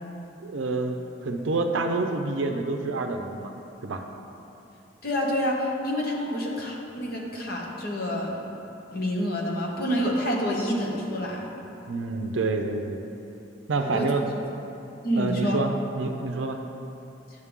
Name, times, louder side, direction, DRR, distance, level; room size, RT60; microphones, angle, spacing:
voice 1, 0.4-1.0 1.2-3.5 3.8-4.0 11.9-13.0 13.7-14.2 15.2-16.6, right 3 dB, 80° right, 4 dB, 0.5 m, -27 dB
voice 2, 5.0-8.4 8.9-11.5 13.9-14.1 15.0-15.6, equal, 50° left, -2 dB, 1.2 m, -27 dB
9.7 x 6.5 x 3.7 m, 2.8 s
head